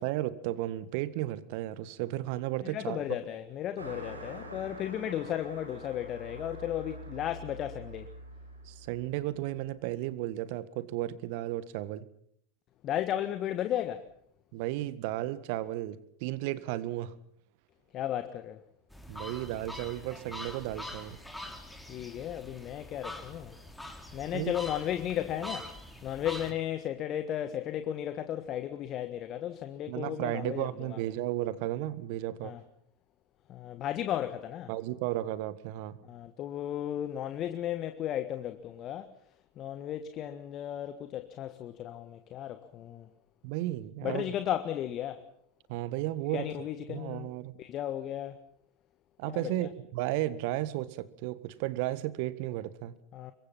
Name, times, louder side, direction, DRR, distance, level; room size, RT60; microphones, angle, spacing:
voice 1, 0.0-3.1 8.6-12.1 14.5-17.1 19.1-21.2 24.3-24.5 29.9-32.5 34.7-36.0 43.4-44.3 45.7-47.5 49.2-52.9, right 15 dB, 55° right, 1.7 m, -34 dB
voice 2, 2.6-8.1 12.8-14.0 17.9-18.6 21.9-23.5 24.1-25.7 26.0-31.0 32.4-32.6 33.5-34.7 36.0-39.1 39.6-43.1 44.0-45.2 46.3-47.3 47.6-48.4 49.3-49.7 53.1-53.3, left 11 dB, 40° left, 1.6 m, -35 dB
Car passing by, 3.8-9.6, right 1 dB, 90° right, 5.6 m, -46 dB
sound 1, 18.9-26.5, left 1 dB, 5° left, 3.8 m, -44 dB
26.5 x 23.5 x 5.8 m
figure-of-eight pair, 85°, 0 cm